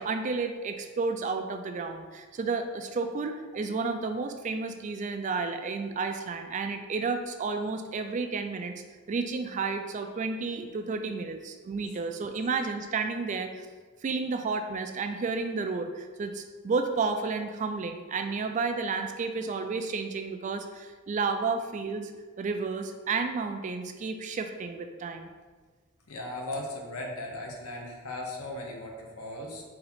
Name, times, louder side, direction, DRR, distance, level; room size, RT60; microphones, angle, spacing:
voice 1, 0.0-8.7 9.1-13.7 14.0-22.1 22.4-25.3, right 4 dB, 35° right, 6 dB, 0.3 m, -31 dB
voice 2, 26.1-29.6, left 1 dB, 80° left, 0 dB, 0.9 m, -37 dB
4.3 x 2.8 x 4.1 m, 1.4 s
head